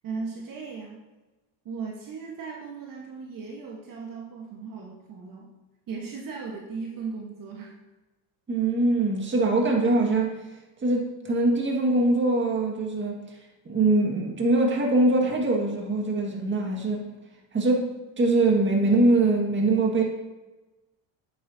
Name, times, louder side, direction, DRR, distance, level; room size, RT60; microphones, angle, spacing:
voice 1, 0.0-1.0 1.6-5.5 5.9-7.7, right 5 dB, 50° right, -1 dB, 1.4 m, -37 dB
voice 2, 8.5-10.4 10.8-13.2 13.7-17.1 17.5-20.0, right 2 dB, 25° right, 0 dB, 1.8 m, -23 dB
8.4 x 8.3 x 2.8 m, 1.1 s
cardioid pair, 105°, 42 cm